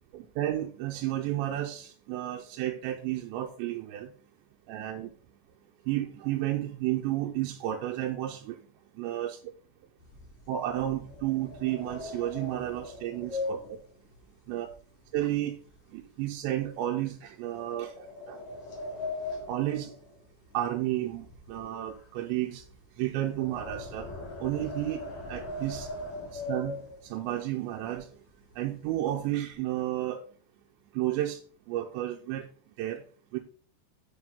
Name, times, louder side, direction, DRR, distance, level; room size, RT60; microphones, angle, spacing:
voice 1, 0.1-4.1 4.7-5.1 5.9-8.6 9.0-9.4 10.5-13.8 14.5-14.7 15.1-15.6 15.9-17.9 18.3-18.4 19.5-19.9 20.5-22.6 23.0-24.1 24.4-25.0 25.3-25.9 26.3-26.8 27.1-28.1 28.6-30.2 31.0-31.4 31.7-32.5 32.8-33.0 33.3-33.4, right 13 dB, 85° right, 2.9 m, -32 dB
sound 1, 10.0-15.4 15.7-16.0 16.5-16.6 17.4-20.8 21.0-27.3 27.9-28.0 28.3-28.5 28.9-29.5, left 2 dB, 50° left, 2.5 m, -40 dB
9.7 x 5.4 x 3.7 m
omnidirectional pair, 5.4 m